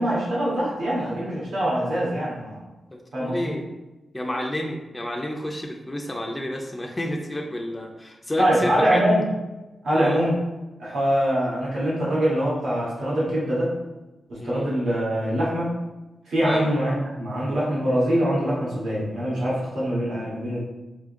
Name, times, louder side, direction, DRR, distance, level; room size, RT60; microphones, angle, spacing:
voice 1, 0.0-2.6 3.1-3.6 8.4-9.3 9.8-10.3 10.8-13.7 14.3-15.7 16.3-20.6, equal, 90° right, -7 dB, 1.3 m, -23 dB
voice 2, 2.9-3.6 4.1-9.0 9.9-10.2 14.4-14.7 16.4-16.7, left 1 dB, 10° left, 1 dB, 0.4 m, -30 dB
3.7 x 3.6 x 2.5 m, 1.1 s
wide cardioid pair, 150°, 0 cm